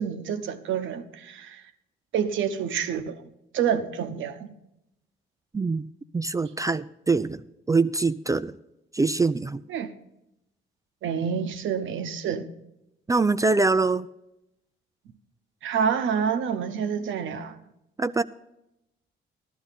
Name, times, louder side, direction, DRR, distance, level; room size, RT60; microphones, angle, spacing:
voice 1, 0.0-1.6 2.1-3.2 3.5-4.5 9.7-9.9 11.0-12.5 15.6-17.6, right 7 dB, 75° right, 1.0 m, -28 dB
voice 2, 6.1-7.4 7.7-8.6 8.9-9.6 13.1-14.1 18.0-18.2, right 3 dB, 15° right, 0.3 m, -23 dB
13.5 x 12.0 x 4.1 m
cardioid pair, 90°, 20 cm